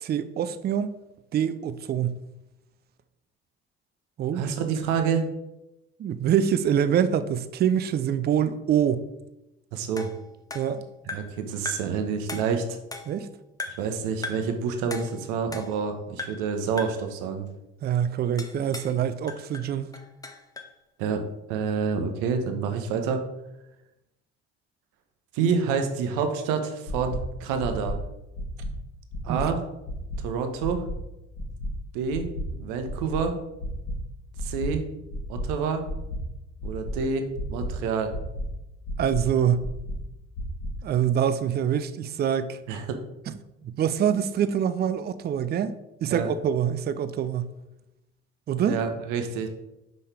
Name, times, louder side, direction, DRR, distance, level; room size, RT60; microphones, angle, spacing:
voice 1, 0.0-1.0 1.3-2.2 4.2-4.5 6.0-9.1 10.5-10.8 13.1-13.3 17.8-19.9 29.3-29.4 39.0-39.7 40.8-42.6 43.6-45.7 46.0-47.5 48.5-48.8, right 9 dB, 30° right, 0.4 m, -25 dB
voice 2, 4.3-5.3 9.7-10.1 11.1-12.8 13.8-17.5 21.0-21.2 21.5-23.2 25.3-28.0 29.2-29.6 30.2-30.8 31.9-32.3 32.6-33.3 34.4-34.8 35.3-35.8 36.6-38.1 42.7-43.0 46.1-46.3 48.7-49.5, right 6 dB, 65° right, 0.8 m, -28 dB
sound 1, 10.0-11.4 11.7-12.0 12.3-13.3 13.6-13.9 14.2-14.6 14.9-15.9 16.2-16.5 16.8-17.1 18.4-19.0 19.3-20.8, left 3 dB, 10° left, 0.7 m, -38 dB
sound 2, 26.9-27.2 27.6-27.9 28.3-28.7 29.1-29.4 29.8-30.2 30.6-30.9 31.3-31.7 32.1-32.4 32.8-33.2 33.6-33.9 34.3-34.7 35.1-35.4 35.8-36.2 36.6-36.9 37.3-37.7 38.1-38.4 38.8-39.2 39.6-39.9 40.3-40.7, left 1 dB, 55° left, 1.6 m, -32 dB
5.5 x 5.2 x 3.4 m
figure-of-eight pair, 50°, 34 cm